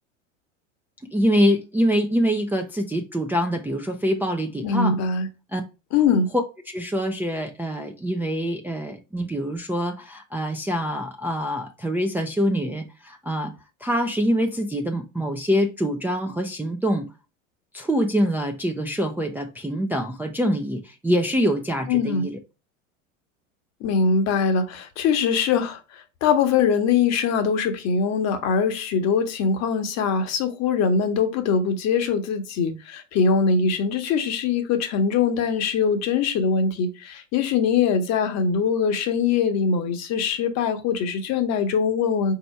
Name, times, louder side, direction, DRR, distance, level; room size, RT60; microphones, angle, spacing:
voice 1, 1.1-5.0 5.5-5.6 6.7-13.5 13.8-17.1 17.7-22.4, equal, 5° right, 0.5 m, -25 dB
voice 2, 4.6-5.3 5.9-6.3 21.9-22.3 23.8-42.3, left 5 dB, 45° left, 1.0 m, -22 dB
4.2 x 2.8 x 4.3 m
hypercardioid pair, 95°, 38 cm